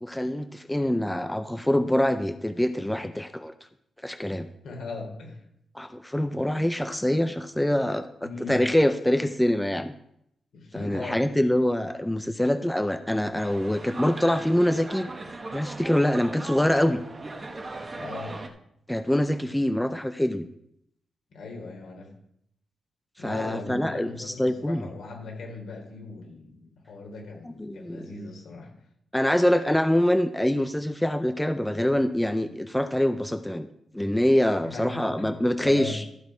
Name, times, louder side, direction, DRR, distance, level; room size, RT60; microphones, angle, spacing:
voice 1, 0.0-3.5 4.0-4.5 5.7-9.9 10.7-15.1 15.5-17.0 18.9-20.5 23.2-24.9 27.4-28.1 29.1-33.7 33.9-36.0, left 1 dB, 5° left, 9 dB, 0.4 m, -25 dB
voice 2, 4.6-5.4 8.2-8.6 10.5-11.2 17.9-18.4 21.3-22.1 23.2-28.7 34.7-35.3 35.6-35.9, left 3 dB, 75° left, 1 dB, 3.1 m, -38 dB
sound 1, 13.3-18.5, right 2 dB, 25° right, 1.1 m, -38 dB
13.0 x 6.3 x 4.7 m, 0.75 s
wide cardioid pair, 145°, 0 cm